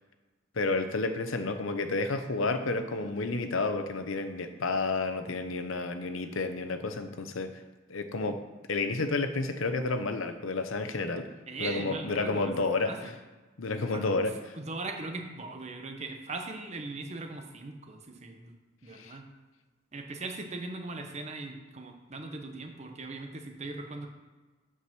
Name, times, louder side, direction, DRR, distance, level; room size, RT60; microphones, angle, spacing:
voice 1, 0.6-7.6 7.9-8.4 8.7-11.3 11.6-13.1 13.6-14.6 18.9-19.2, left 3 dB, 85° left, 8 dB, 0.8 m, -31 dB
voice 2, 11.5-13.1 13.9-14.0 14.5-18.5 18.8-19.2 19.9-24.1, right 3 dB, 35° right, 4 dB, 1.0 m, -39 dB
8.4 x 4.9 x 6.0 m, 1.2 s
head